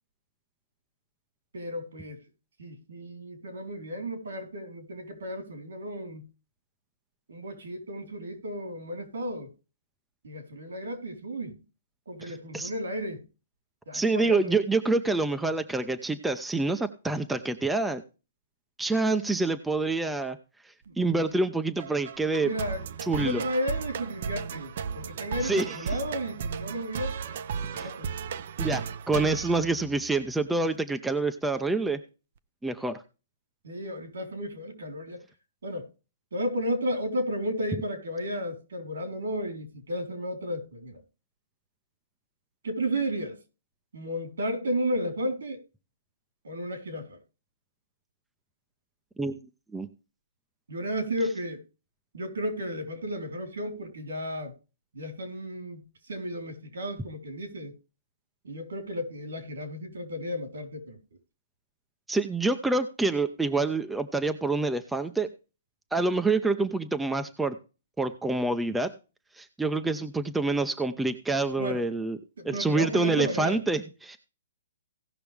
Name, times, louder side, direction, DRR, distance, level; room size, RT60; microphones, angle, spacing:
voice 1, 1.5-2.2 2.6-6.2 7.3-9.5 10.2-11.5 12.1-13.2 13.9-14.6 20.9-21.0 22.4-22.8 23.2-28.1 33.6-35.2 35.6-35.9 36.3-41.0 42.6-43.4 43.9-45.6 46.4-47.2 50.7-51.6 52.1-54.5 54.9-55.8 56.1-57.7 58.4-61.0 71.6-71.8 72.4-73.6, equal, 85° right, 3.8 m, -33 dB
voice 2, 12.3-12.7 13.9-18.0 18.8-20.4 21.0-22.5 23.1-23.4 25.4-25.6 27.7-27.9 28.6-32.0 32.6-33.0 49.2-49.4 49.7-49.9 62.1-65.3 65.9-67.6 68.0-68.9 69.4-72.2 72.4-74.2, right 3 dB, 5° right, 0.7 m, -27 dB
sound 1, 21.8-30.4, right 6 dB, 50° right, 0.6 m, -35 dB
17.0 x 5.9 x 3.4 m
hypercardioid pair, 155°, 0 cm